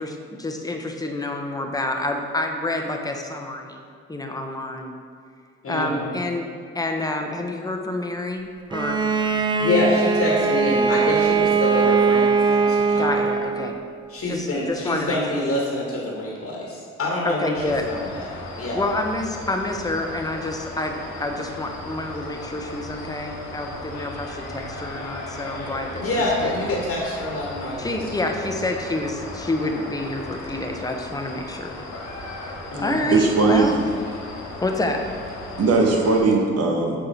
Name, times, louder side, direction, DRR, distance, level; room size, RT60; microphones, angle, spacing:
voice 1, 0.0-3.8 4.1-4.9 5.7-6.5 6.7-9.0 13.0-13.8 14.3-15.4 17.2-17.9 18.7-26.5 27.8-31.9 32.8-33.8 34.1-34.2 34.6-35.0, left 2 dB, 10° left, 3 dB, 0.8 m, -28 dB
voice 2, 5.6-6.1 9.6-13.1 14.1-17.5 17.9-18.3 18.6-18.8 26.0-28.0 32.7-33.1, left 1 dB, 45° left, -3 dB, 1.4 m, -26 dB
Bowed string instrument, 8.7-13.8, right 5 dB, 15° right, 0.4 m, -21 dB
sound 1, 17.5-36.2, left 2 dB, 65° left, 1.3 m, -36 dB
voice 3, 33.1-33.7 35.6-37.0, right 3 dB, 50° right, 1 dB, 1.1 m, -19 dB
6.6 x 3.8 x 4.4 m, 2.1 s
hypercardioid pair, 50°, 31 cm